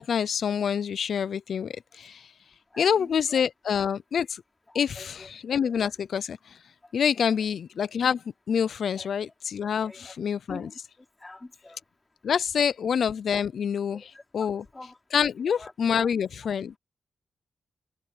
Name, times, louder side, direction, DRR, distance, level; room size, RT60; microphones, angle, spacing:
voice 1, 0.0-2.3 2.8-4.4 4.7-6.6 6.9-10.7 12.2-14.0 14.3-14.6 15.1-16.7, left 7 dB, 75° left, 0.6 m, -27 dB
voice 2, 2.7-3.1 3.7-3.8 4.7-5.3 5.6-5.8 9.0-9.1 9.9-10.1 10.5-10.8 11.2-11.8 13.9-14.5 14.7-15.0 15.5-15.7, left 2 dB, 25° left, 4.0 m, -45 dB
cardioid pair, 50°, 0 cm